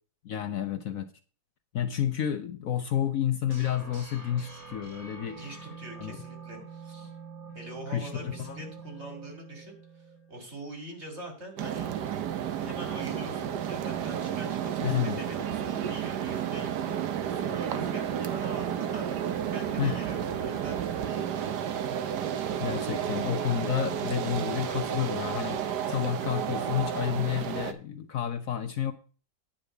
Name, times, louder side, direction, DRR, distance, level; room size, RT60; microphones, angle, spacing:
voice 1, 0.3-1.1 1.7-5.4 6.0-6.2 7.9-8.6 14.8-15.2 19.8-20.1 22.6-25.6 25.9-28.9, left 10 dB, 60° left, 9 dB, 1.0 m, -30 dB
sound 1, 3.5-10.4, right 4 dB, 60° right, 3.0 m, -46 dB
voice 2, 5.2-7.1 7.5-11.9 12.6-21.3, right 1 dB, 40° right, 3 dB, 3.5 m, -44 dB
sound 2, 11.6-27.7, right 9 dB, 80° right, 1.5 m, -32 dB
10.0 x 5.2 x 8.0 m, 0.39 s
omnidirectional pair, 1.8 m